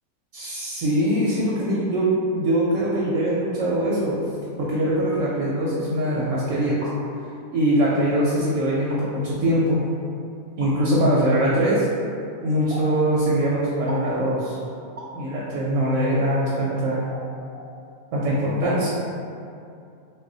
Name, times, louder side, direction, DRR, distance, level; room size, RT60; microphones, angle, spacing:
voice 1, 0.3-4.2 4.6-6.8 7.5-9.8 10.6-11.9 12.4-14.6 15.1-17.1 18.1-18.9, right 1 dB, 70° right, -5 dB, 0.9 m, -22 dB
sound 1, 6.8-7.0 7.9-8.0 8.8-9.0 10.6-10.7 12.7-12.9 13.9-14.1 15.0-15.2 16.4-16.5 17.1-17.3 17.5-17.7, right 1 dB, 45° right, 0.4 m, -37 dB
3.3 x 2.1 x 3.7 m, 2.5 s
omnidirectional pair, 1.6 m